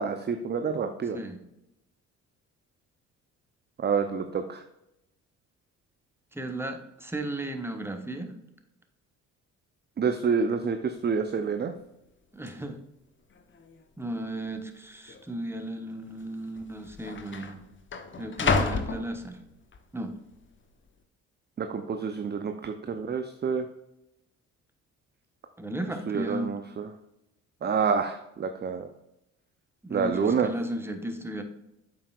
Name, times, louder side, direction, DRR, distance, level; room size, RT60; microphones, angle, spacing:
voice 1, 0.0-1.2 3.8-4.6 10.0-11.7 21.6-23.6 26.1-26.9 27.6-28.9 29.9-30.5, right 6 dB, 25° right, 7 dB, 0.6 m, -28 dB
voice 2, 6.3-8.3 12.3-12.8 14.0-17.6 18.2-19.4 19.9-20.2 25.6-26.5 29.8-31.4, right 1 dB, 5° right, 6 dB, 1.2 m, -35 dB
sound 1, 11.0-11.1 11.3-11.7 12.5-12.6 13.3-13.8 14.1-14.2 15.1-15.2 16.2-16.3 16.6-19.8 20.3-20.7, left 4 dB, 30° left, 0.9 m, -31 dB
8.5 x 6.8 x 2.4 m, 0.87 s
hypercardioid pair, 45°, 40 cm